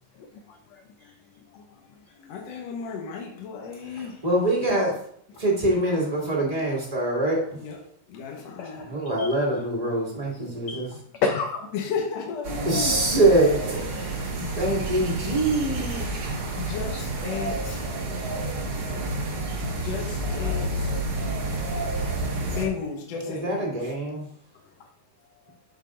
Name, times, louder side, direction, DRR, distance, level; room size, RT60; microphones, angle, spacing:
voice 1, 0.1-1.1 1.5-1.8 2.1-2.6 3.6-3.7 8.5-9.4 10.7-11.7 12.2-12.3 13.9-14.0 15.4-15.5 15.8-16.3 16.9-17.0 17.8-18.1 18.6-18.7 19.2-19.8 20.3-20.6 22.4-22.5 24.8-24.9, left 4 dB, 90° left, 4 dB, 1.5 m, -35 dB
voice 2, 2.3-4.2 7.6-7.8 8.1-8.8 11.7-13.0 14.4-14.7 16.6-17.9 19.7-20.9 22.5-23.7, left 6 dB, 60° left, -1 dB, 1.9 m, -34 dB
voice 3, 3.9-4.9 5.4-7.6 8.9-10.9 12.6-14.3 14.5-16.2 23.3-24.2, right 1 dB, 15° right, -4 dB, 1.5 m, -24 dB
sound 1, 12.4-22.7, right 2 dB, 50° right, 1.7 m, -29 dB
12.5 x 5.4 x 2.5 m, 0.64 s
omnidirectional pair, 4.0 m